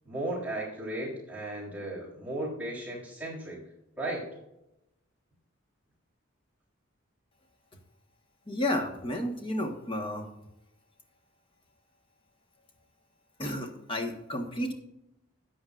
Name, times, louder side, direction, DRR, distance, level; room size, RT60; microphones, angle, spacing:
voice 1, 0.0-3.6 4.0-4.3, right 1 dB, 5° right, -6 dB, 3.6 m, -35 dB
voice 2, 8.5-10.2 13.4-14.7, left 1 dB, 25° left, 2 dB, 1.5 m, -32 dB
13.5 x 9.2 x 2.5 m, 0.88 s
head